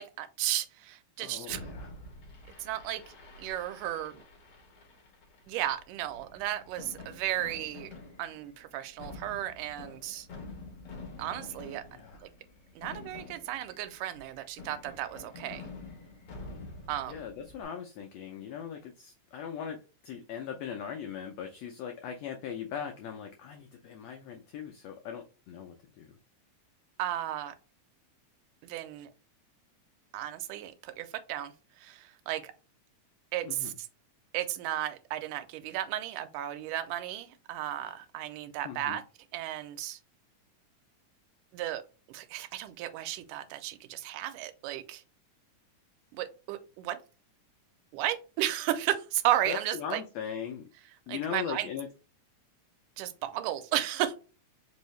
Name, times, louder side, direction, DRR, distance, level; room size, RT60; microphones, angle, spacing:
voice 1, 0.0-1.6 2.6-3.0 3.4-4.2 5.5-7.9 8.2-10.3 11.2-11.8 12.2-12.3 12.8-15.7 16.9-17.2 27.0-27.5 28.6-29.1 30.1-32.5 33.3-33.9 34.3-39.0 39.3-40.0 41.5-41.8 42.1-45.0 46.2-47.0 47.9-50.0 51.1-51.7 53.0-54.2, right 13 dB, 90° right, 10 dB, 2.1 m, -34 dB
voice 2, 1.2-1.9 11.9-12.2 17.1-26.1 33.4-33.7 38.6-39.0 49.5-50.7 51.1-51.9, left 8 dB, 90° left, 4 dB, 1.4 m, -39 dB
Fireworks, 1.5-17.6, left 3 dB, 55° left, 1.8 m, -48 dB
4.8 x 2.7 x 3.1 m, 0.33 s
omnidirectional pair, 3.6 m